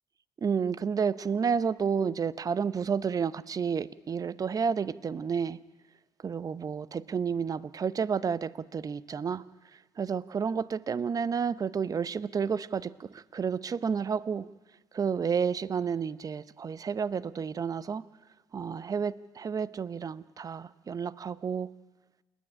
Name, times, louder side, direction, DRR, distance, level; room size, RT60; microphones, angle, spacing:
voice 1, 0.4-5.6 6.2-9.4 10.0-14.5 14.9-18.1 18.5-21.7, right 6 dB, 35° right, 18 dB, 0.7 m, -30 dB
27.5 x 10.0 x 10.0 m, 1.1 s
hypercardioid pair, 55°, 11 cm